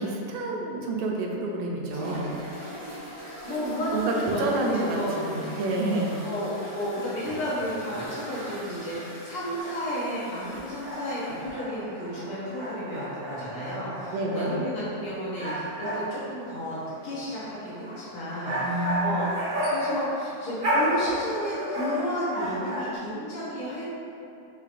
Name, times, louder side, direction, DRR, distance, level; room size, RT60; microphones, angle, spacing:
voice 1, 0.0-2.4 3.9-6.2 14.1-14.6 18.6-19.2, right 2 dB, 80° right, -1 dB, 1.7 m, -29 dB
sound 1, 1.9-11.5, equal, 30° left, 0.9 m, -41 dB
voice 2, 3.4-5.2 6.2-19.3 19.6-23.9, equal, 70° left, -9 dB, 1.3 m, -32 dB
sound 2, 9.6-22.9, equal, 60° right, 0.8 m, -32 dB
5.7 x 3.7 x 2.5 m, 2.8 s
omnidirectional pair, 3.4 m